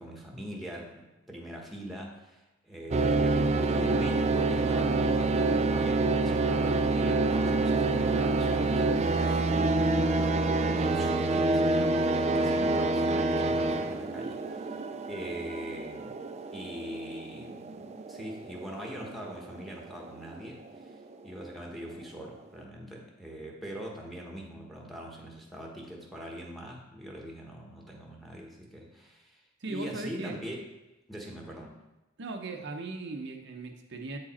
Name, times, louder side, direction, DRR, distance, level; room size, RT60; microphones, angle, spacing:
voice 1, 0.0-14.8 15.1-16.2 16.5-30.6 31.1-31.8, equal, ahead, -1 dB, 1.2 m, -42 dB
sound 1, 2.9-21.1, right 2 dB, 35° right, 0.4 m, -27 dB
voice 2, 29.6-30.4 32.2-34.2, right 3 dB, 60° right, 3 dB, 0.8 m, -38 dB
8.1 x 4.8 x 4.2 m, 1.0 s
head